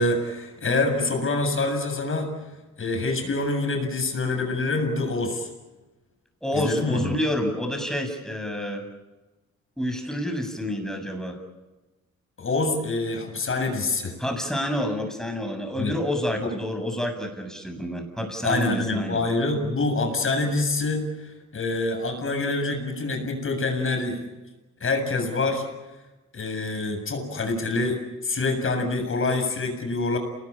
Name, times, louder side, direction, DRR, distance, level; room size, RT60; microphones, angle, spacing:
voice 1, 0.0-2.3 2.8-5.5 6.5-7.2 12.4-14.2 15.8-15.9 16.4-16.5 18.4-24.3 24.8-25.7 26.3-28.0 28.2-30.2, left 2 dB, 45° left, 5 dB, 7.3 m, -26 dB
voice 2, 6.4-8.8 9.8-11.4 14.2-19.2, left 1 dB, ahead, 4 dB, 7.6 m, -28 dB
29.0 x 20.0 x 8.9 m, 1.1 s
cardioid pair, 90°, 29 cm